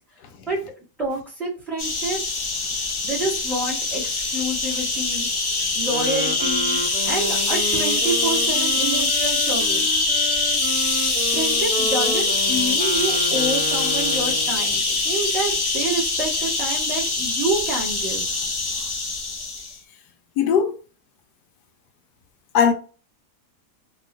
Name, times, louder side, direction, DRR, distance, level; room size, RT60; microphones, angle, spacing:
voice 1, 1.0-2.4 3.0-5.3 5.7-10.0 11.3-18.3, right 2 dB, ahead, 1.4 m, -28 dB
sound 1, 1.8-19.7, left 3 dB, 45° left, 0.4 m, -23 dB
Wind instrument woodwind instrument, 5.8-14.7, equal, 70° right, 1.5 m, -31 dB
voice 2, 20.4-20.8 22.5-22.7, left 7 dB, 90° left, 1.2 m, -18 dB
3.2 x 2.9 x 2.5 m
omnidirectional pair, 1.7 m